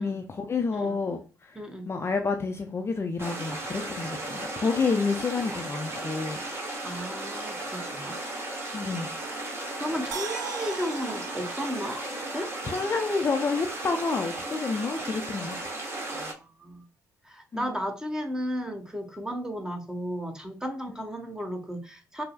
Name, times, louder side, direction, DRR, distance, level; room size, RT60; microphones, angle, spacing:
voice 1, 0.0-1.6 1.9-6.4 8.7-9.1 12.6-15.6 17.5-17.7, left 4 dB, 30° left, 0.5 m, -29 dB
voice 2, 1.5-1.9 6.8-8.2 9.7-12.0 12.3-12.5 16.1-16.8 17.2-22.2, equal, 10° right, 1.0 m, -34 dB
sound 1, 3.2-16.3, right 2 dB, 30° right, 1.3 m, -35 dB
sound 2, 10.1-13.3 13.6-13.7, right 7 dB, 50° right, 0.5 m, -41 dB
5.2 x 2.0 x 2.2 m
hypercardioid pair, 50°, 8 cm